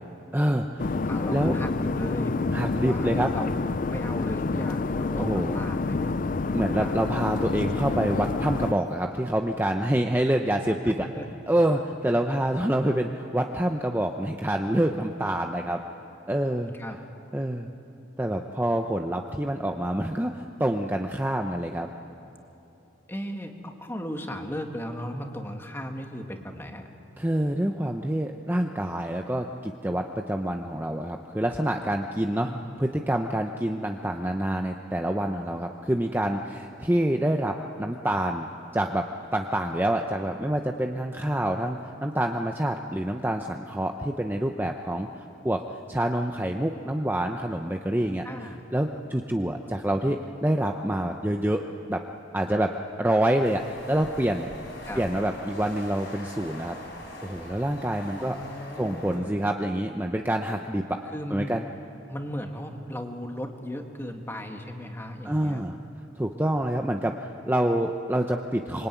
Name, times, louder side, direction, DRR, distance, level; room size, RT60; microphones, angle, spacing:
voice 1, 0.3-1.0 1.3-1.5 2.5-3.3 5.1-5.6 6.5-11.1 11.5-15.8 16.3-16.7 17.3-17.7 18.2-21.9 27.2-32.5 32.8-39.1 39.3-45.1 45.4-45.6 45.9-48.2 48.7-51.6 51.9-52.0 52.3-52.7 53.0-54.5 55.0-56.8 57.2-58.4 58.8-61.0 61.3-61.6 65.2-65.8 66.2-68.9, right 1 dB, 10° right, 3 dB, 0.7 m, -27 dB
sound 1, 0.8-8.7, left 3 dB, 45° left, 0.5 m, -28 dB
voice 2, 1.1-2.3 2.8-3.5 3.9-6.3 6.8-7.0 10.9-11.3 16.8-17.0 23.1-26.8 32.4-32.6 48.2-48.6 54.9-55.0 58.2-59.3 61.1-61.5 62.1-65.6, equal, 10° left, 3 dB, 1.9 m, -36 dB
sound 2, 53.4-59.2, left 1 dB, 65° left, 7.7 m, -42 dB
25.5 x 24.0 x 9.3 m, 2.9 s
head